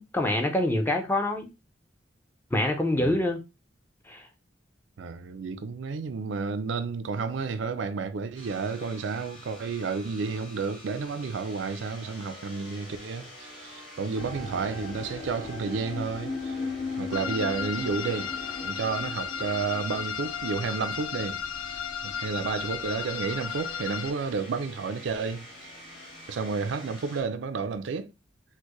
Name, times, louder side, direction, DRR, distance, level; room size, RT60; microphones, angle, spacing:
voice 1, 0.0-1.5 2.5-3.4 4.1-4.3, left 1 dB, 10° left, 0.5 m, -26 dB
voice 2, 5.0-16.6 17.0-18.3 18.6-21.4 21.7-25.4 26.3-28.1, right 5 dB, 75° right, 0.4 m, -31 dB
sound 1, 8.3-27.2, left 1 dB, 30° left, 1.2 m, -47 dB
sound 2, 14.1-25.3 25.6-26.2 26.8-26.9, left 3 dB, 60° left, 1.3 m, -39 dB
sound 3, 17.1-24.1, left 7 dB, 90° left, 0.4 m, -35 dB
4.4 x 2.1 x 2.9 m
head